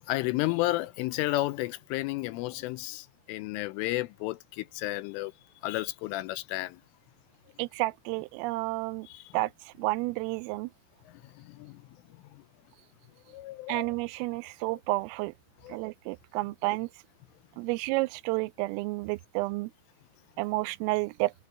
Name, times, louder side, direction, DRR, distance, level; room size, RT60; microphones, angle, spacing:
voice 1, 0.1-5.3 5.6-6.8 9.0-9.3 11.2-11.8 12.3-12.4 13.3-13.9 14.7-14.8 15.6-15.8, left 18 dB, 80° left, 3.1 m, -32 dB
voice 2, 7.6-9.1 9.3-10.7 13.7-15.3 15.7-16.9 17.6-19.7 20.4-21.3, right 22 dB, 85° right, 3.2 m, -31 dB
omnidirectional pair, 5.9 m